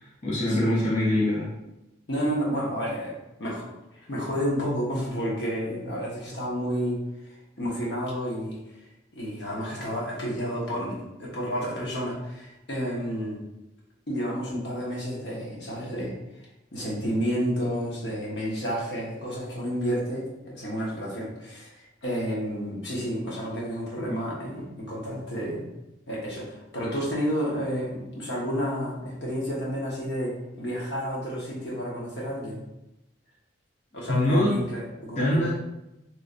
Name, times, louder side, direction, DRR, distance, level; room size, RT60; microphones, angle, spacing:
voice 1, 0.2-1.5 34.1-34.5 35.2-35.5, left 1 dB, 35° left, -7 dB, 0.5 m, -23 dB
voice 2, 2.1-3.1 3.4-3.7 4.1-7.0 7.6-8.6 9.1-13.4 14.1-16.1 16.7-25.7 26.1-32.6 33.9-35.5, equal, 65° left, -4 dB, 1.0 m, -30 dB
3.1 x 2.6 x 2.5 m, 0.91 s
head